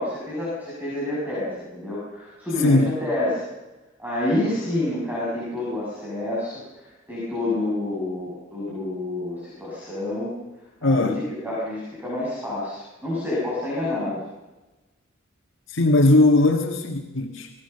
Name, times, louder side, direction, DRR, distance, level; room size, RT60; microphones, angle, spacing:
voice 1, 0.0-3.4 4.0-10.3 10.8-11.1 11.4-14.2, left 1 dB, 10° right, -7 dB, 6.9 m, -28 dB
voice 2, 2.6-3.0 10.8-11.2 15.7-17.5, left 2 dB, 65° left, 1 dB, 1.8 m, -19 dB
26.5 x 19.5 x 6.8 m, 1.1 s
head